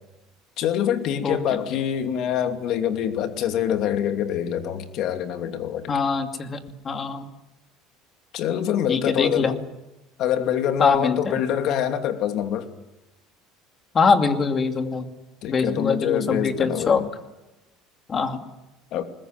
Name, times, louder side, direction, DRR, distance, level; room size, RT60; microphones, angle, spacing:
voice 1, 0.6-5.9 8.3-9.6 10.2-12.7 15.4-17.1 18.9-19.0, left 9 dB, 55° left, 2.8 m, -25 dB
voice 2, 1.2-1.6 5.9-6.6 6.8-7.3 8.9-9.5 10.8-11.4 13.9-15.1 15.5-17.0 18.1-18.4, left 5 dB, 30° left, 2.6 m, -23 dB
21.5 x 20.5 x 9.0 m
supercardioid pair, 120°, 0 cm